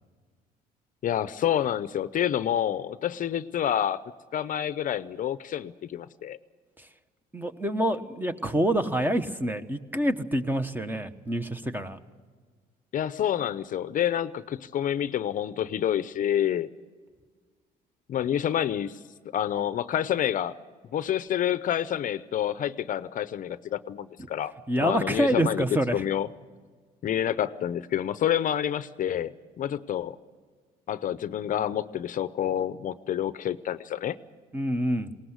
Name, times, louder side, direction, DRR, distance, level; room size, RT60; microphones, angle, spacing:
voice 1, 1.0-4.0 4.3-6.4 12.9-16.7 18.1-19.0 19.3-20.5 20.9-24.5 24.8-26.3 27.0-30.2 30.9-34.2, left 10 dB, 50° left, 14 dB, 0.7 m, -28 dB
voice 2, 7.3-12.0 24.7-26.0 34.5-35.1, right 1 dB, 10° right, 10 dB, 1.2 m, -27 dB
20.5 x 18.5 x 8.1 m, 1.6 s
cardioid pair, 110°, 17 cm